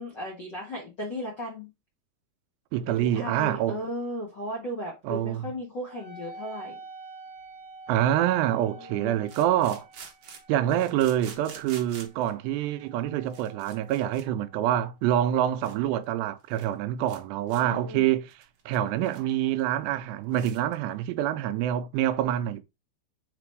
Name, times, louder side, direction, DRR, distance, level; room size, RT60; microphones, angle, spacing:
voice 1, 0.0-1.7 3.0-6.7 8.6-9.3 17.5-18.1, equal, 55° left, 1.2 m, -36 dB
voice 2, 2.7-3.8 5.1-5.4 7.9-9.9 10.5-18.3 18.7-22.6, right 12 dB, 85° right, 2.7 m, -26 dB
Wind instrument woodwind instrument, 5.9-14.8, right 2 dB, 20° right, 1.6 m, -48 dB
sound 1, 7.4-7.5 9.2-12.3 13.0-13.1 13.3-14.2 14.5-14.7 15.2-15.3 15.6-15.8 16.0-16.1 16.4-16.7 17.1-17.2 17.5-17.6 18.0-19.3 19.6-19.7 20.0-20.1 20.3-20.7, right 6 dB, 70° right, 1.4 m, -48 dB
5.9 x 4.0 x 4.6 m
omnidirectional pair, 4.8 m